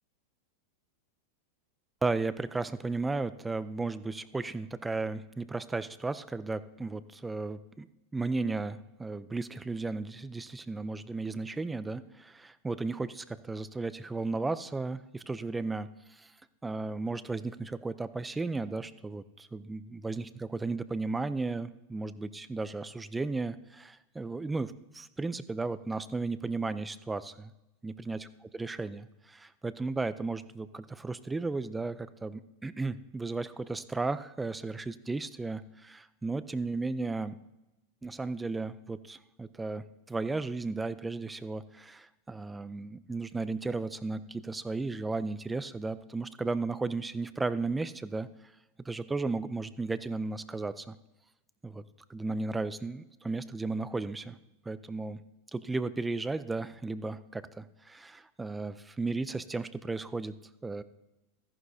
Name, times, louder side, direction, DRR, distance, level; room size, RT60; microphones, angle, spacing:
voice 1, 2.0-7.9 8.1-15.9 16.2-16.3 16.6-27.5 27.8-37.4 38.0-48.3 48.9-51.0 51.6-51.8 52.1-54.4 54.7-55.2 55.5-60.4 60.6-60.8, right 3 dB, 10° right, 15 dB, 0.5 m, -34 dB
14.0 x 11.0 x 2.8 m, 0.96 s
hypercardioid pair, 115°, 0 cm